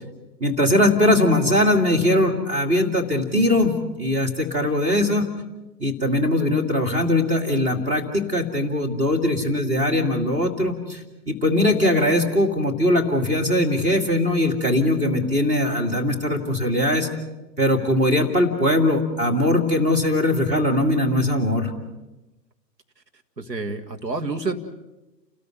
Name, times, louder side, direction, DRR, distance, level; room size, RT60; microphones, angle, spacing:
voice 1, 0.4-5.3 5.8-11.0 11.3-17.1 17.6-21.7, left 1 dB, 15° right, 1 dB, 2.5 m, -21 dB
voice 2, 23.4-24.6, right 3 dB, 80° right, 5 dB, 2.3 m, -28 dB
29.5 x 13.5 x 9.5 m, 1.1 s
figure-of-eight pair, 125°, 49 cm